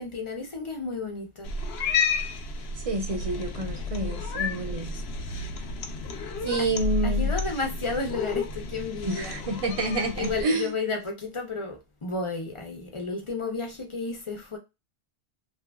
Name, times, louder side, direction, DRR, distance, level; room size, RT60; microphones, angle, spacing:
voice 1, 0.0-1.5 6.4-6.7 7.0-9.4 10.1-14.6, left 3 dB, 35° left, 0.6 m, -32 dB
Cat, 1.4-10.4, left 5 dB, 80° left, 0.8 m, -31 dB
voice 2, 2.9-4.9 6.4-7.3 9.0-10.7, right 2 dB, 40° right, 0.6 m, -28 dB
2.8 x 2.5 x 2.2 m
omnidirectional pair, 1.0 m